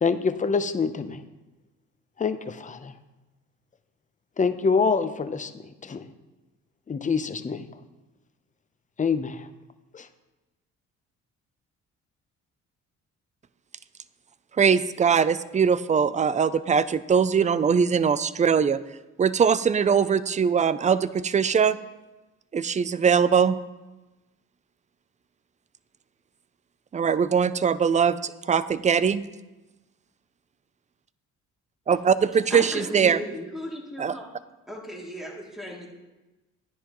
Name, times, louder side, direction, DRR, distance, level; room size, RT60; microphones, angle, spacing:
voice 1, 0.0-1.2 2.2-2.9 4.4-6.1 6.9-7.7 9.0-9.5 9.9-10.1, left 5 dB, 25° left, 10 dB, 0.7 m, -26 dB
voice 2, 14.6-18.8 19.2-21.8 22.5-23.6 26.9-29.2 31.9-33.2 34.0-34.1, right 6 dB, 25° right, 16 dB, 0.4 m, -21 dB
voice 3, 32.5-34.3 34.7-35.9, equal, ahead, -3 dB, 2.7 m, -35 dB
12.0 x 10.0 x 3.0 m, 1.1 s
cardioid pair, 90°, 30 cm